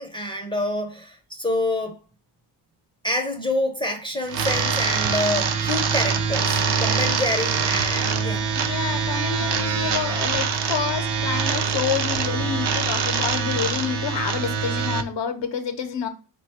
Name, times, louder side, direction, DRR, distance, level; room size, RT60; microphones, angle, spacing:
voice 1, 0.0-2.0 3.0-8.5, left 1 dB, 10° left, 0.6 m, -27 dB
sound 1, 4.3-15.0, right 5 dB, 55° right, 0.7 m, -24 dB
voice 2, 8.6-16.1, left 7 dB, 60° left, 0.8 m, -28 dB
4.0 x 2.3 x 4.1 m
cardioid pair, 120°, 49 cm